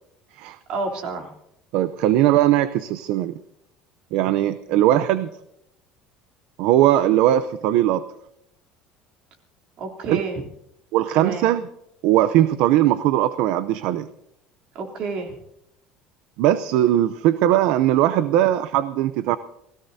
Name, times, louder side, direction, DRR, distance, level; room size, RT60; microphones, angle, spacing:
voice 1, 0.7-1.3 4.7-4.8 9.8-10.4 11.1-11.5 14.7-15.3, right 3 dB, 50° right, 2 dB, 3.2 m, -29 dB
voice 2, 1.7-3.3 4.1-5.3 6.6-8.0 10.1-10.2 10.9-11.7 12.0-14.1 16.4-19.4, right 13 dB, 65° right, 13 dB, 0.6 m, -19 dB
28.5 x 18.0 x 2.7 m, 0.80 s
cardioid pair, 160°, 2 cm